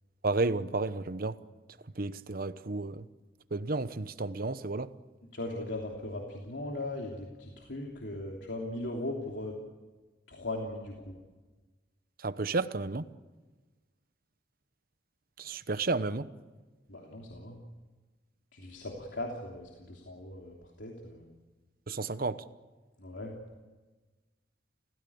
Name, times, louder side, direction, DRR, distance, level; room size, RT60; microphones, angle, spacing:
voice 1, 0.2-1.4 2.0-3.0 3.5-4.9 12.2-13.1 15.4-16.3 21.9-22.4, right 3 dB, 55° right, 0.9 m, -32 dB
voice 2, 5.3-9.5 10.3-11.2 16.9-17.6 18.5-21.3 23.0-23.3, left 1 dB, 90° left, 3.1 m, -39 dB
30.0 x 16.0 x 8.6 m
head